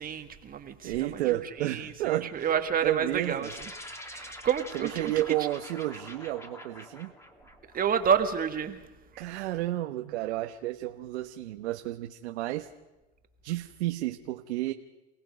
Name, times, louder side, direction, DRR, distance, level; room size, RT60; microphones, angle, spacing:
voice 1, 0.0-3.5 4.0-5.1 7.7-8.8, right 7 dB, 25° right, 7 dB, 1.6 m, -29 dB
voice 2, 0.8-2.5 2.8-3.5 4.7-7.1 9.2-12.7 13.4-14.7, right 15 dB, 75° right, 6 dB, 1.3 m, -31 dB
sound 1, 3.4-8.1, left 1 dB, 10° left, 2.5 m, -45 dB
29.5 x 18.5 x 5.3 m, 1.1 s
supercardioid pair, 120°, 34 cm